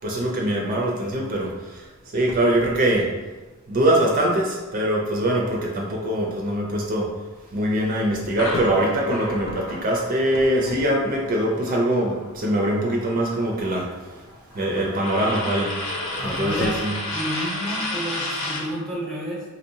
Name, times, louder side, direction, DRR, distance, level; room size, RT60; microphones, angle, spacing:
voice 1, 0.0-3.1 3.7-7.1 7.5-14.2 14.5-15.8 16.2-16.9, right 1 dB, 40° right, -1 dB, 0.4 m, -23 dB
sound 1, 1.9-3.3 7.8-11.3 15.8-17.0, left 3 dB, 45° left, 0.3 m, -37 dB
sound 2, 8.4-12.4 12.8-18.7, left 1 dB, 70° left, 0.9 m, -32 dB
voice 2, 16.2-16.8 17.1-19.4, equal, 5° left, -5 dB, 0.8 m, -30 dB
4.0 x 2.7 x 2.6 m, 1.2 s
head